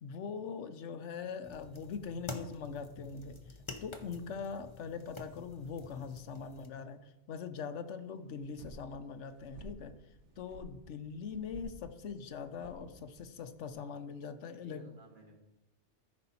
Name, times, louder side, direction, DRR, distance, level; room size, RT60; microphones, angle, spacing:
voice 1, 0.0-3.4 3.8-9.9 10.4-14.8, left 6 dB, 80° left, 10 dB, 1.1 m, -42 dB
sound 1, 1.4-6.7, left 3 dB, 30° left, 0.8 m, -48 dB
sound 2, 8.3-13.7, right 2 dB, 75° right, 1.3 m, -54 dB
voice 2, 14.5-15.3, equal, 45° right, -6 dB, 3.3 m, -59 dB
14.0 x 5.4 x 4.2 m, 0.94 s
omnidirectional pair, 1.2 m